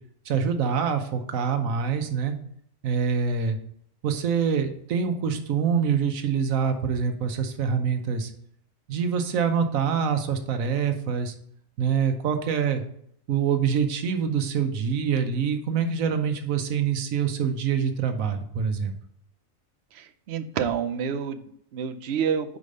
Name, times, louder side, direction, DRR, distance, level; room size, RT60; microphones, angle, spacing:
voice 1, 0.3-2.3 2.8-3.6 4.0-8.3 8.9-11.3 11.8-12.8 13.3-18.9, right 6 dB, 75° right, 7 dB, 1.2 m, -25 dB
voice 2, 19.9-22.6, right 7 dB, 60° right, 10 dB, 0.8 m, -29 dB
5.0 x 5.0 x 5.3 m, 0.69 s
omnidirectional pair, 1.4 m